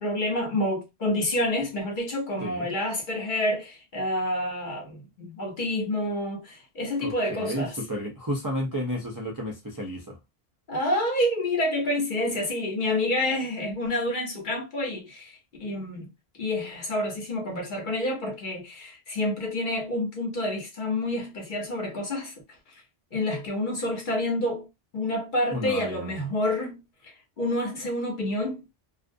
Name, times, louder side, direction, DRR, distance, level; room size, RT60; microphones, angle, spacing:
voice 1, 0.0-7.7 10.7-16.1 16.4-22.4 23.1-24.7 24.9-28.6, left 1 dB, 55° left, 0.9 m, -28 dB
voice 2, 7.0-10.2 25.5-26.1, equal, 30° right, 0.4 m, -32 dB
2.4 x 2.1 x 2.5 m
omnidirectional pair, 1.1 m